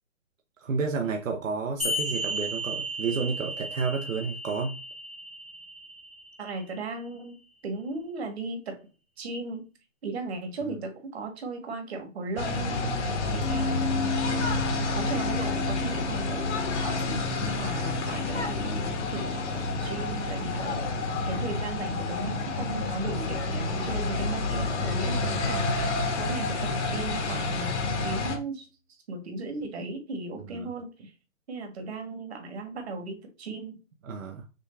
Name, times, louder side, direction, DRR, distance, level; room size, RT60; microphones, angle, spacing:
voice 1, 0.6-4.8 10.6-10.8 14.3-14.7 17.0-17.3 25.2-25.5 30.5-30.7 34.0-34.4, right 5 dB, 80° right, 2 dB, 1.0 m, -31 dB
sound 1, 1.8-6.8, equal, 10° left, 0.4 m, -34 dB
voice 2, 6.4-7.4 7.6-8.8 9.2-9.6 10.0-13.9 14.9-16.4 16.8-18.8 19.1-20.9 21.3-27.7 28.0-31.1 31.5-33.8, right 3 dB, 55° right, 4 dB, 1.6 m, -36 dB
sound 2, 12.4-28.4, left 3 dB, 60° left, 1.4 m, -29 dB
sound 3, 13.4-23.9, left 4 dB, 35° left, 0.9 m, -36 dB
6.3 x 2.3 x 3.3 m, 0.32 s
hypercardioid pair, 155°, 38 cm